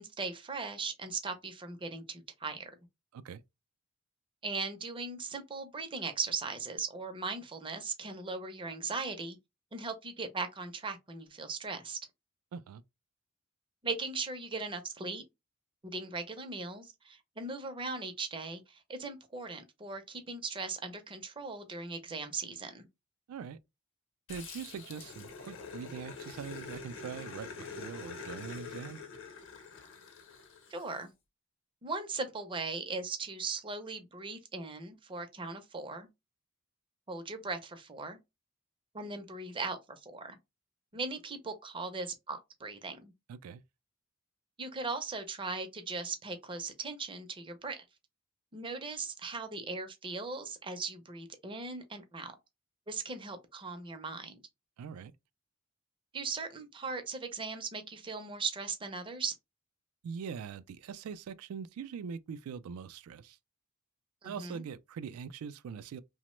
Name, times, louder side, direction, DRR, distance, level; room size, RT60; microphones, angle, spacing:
voice 1, 0.0-2.7 4.4-9.4 9.7-12.0 13.8-15.2 15.8-22.9 30.7-31.1 31.8-36.1 37.1-38.2 38.9-40.4 40.9-43.1 44.6-47.8 48.5-52.3 52.9-54.4 56.1-59.3 64.2-64.6, right 4 dB, 25° right, 0.5 m, -38 dB
voice 2, 12.5-12.8 23.3-23.6 24.3-29.0 43.3-43.6 54.8-55.1 60.0-63.4 64.2-66.0, right 6 dB, 75° right, 0.3 m, -42 dB
Growling, 24.3-31.0, left 5 dB, 60° left, 0.8 m, -46 dB
2.9 x 2.0 x 3.0 m
head